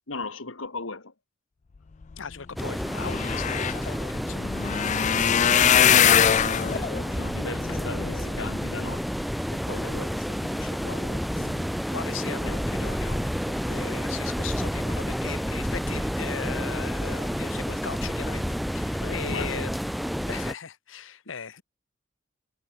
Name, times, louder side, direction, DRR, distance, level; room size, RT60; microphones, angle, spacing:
voice 1, 0.1-1.1 4.6-9.1 9.5-11.8 12.2-12.6 19.0-19.7, left 3 dB, 90° left, 2.2 m, -38 dB
voice 2, 2.2-4.5 11.4-11.5 11.9-18.5 18.7-19.7 20.3-21.6, left 6 dB, 75° left, 0.9 m, -38 dB
sound 1, 2.3-2.4 2.6-9.0 9.6-10.0 10.4-10.6 10.9-11.0, left 9 dB, 40° left, 0.4 m, -23 dB
sound 2, 2.6-20.5, equal, ahead, 1.2 m, -30 dB
head